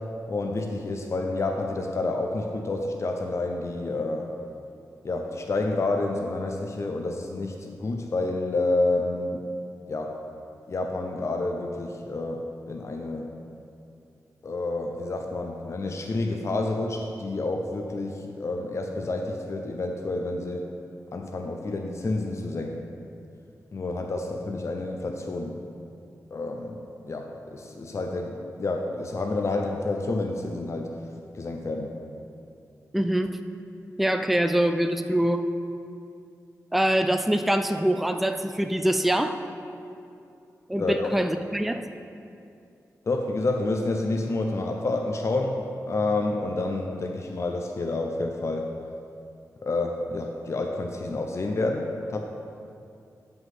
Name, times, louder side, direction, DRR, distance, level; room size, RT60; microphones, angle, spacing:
voice 1, 0.3-4.3 5.0-9.4 9.9-10.1 10.7-12.4 12.7-13.3 14.4-20.6 21.1-22.8 23.7-25.6 26.3-30.9 31.3-31.9 40.8-41.1 43.1-45.6 45.9-48.7 49.6-52.2, left 2 dB, 50° left, 2 dB, 0.6 m, -29 dB
voice 2, 32.9-33.3 34.0-35.5 36.7-39.4 40.7-41.9, right 1 dB, 5° right, 8 dB, 0.4 m, -24 dB
7.5 x 5.4 x 5.9 m, 2.6 s
cardioid pair, 65°, 6 cm